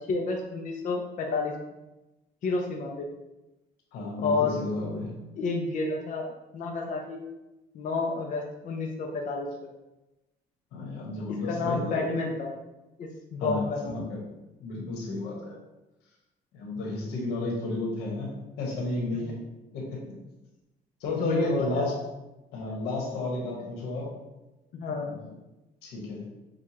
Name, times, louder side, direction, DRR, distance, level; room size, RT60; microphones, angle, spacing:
voice 1, 0.1-1.5 2.4-3.1 4.2-4.6 5.4-7.2 7.7-9.7 11.4-12.5 13.0-14.0 19.1-19.3 21.2-21.9 24.7-25.2, left 3 dB, 50° left, 0 dB, 0.5 m, -30 dB
voice 2, 3.9-5.2 10.7-12.0 13.4-14.2 14.6-15.5 16.5-18.3 18.6-19.4 19.7-20.0 21.0-21.9 22.5-24.1 24.9-25.3 25.8-26.2, left 2 dB, 90° left, -2 dB, 1.3 m, -32 dB
6.4 x 2.4 x 2.9 m, 1.0 s
cardioid pair, 110°, 17 cm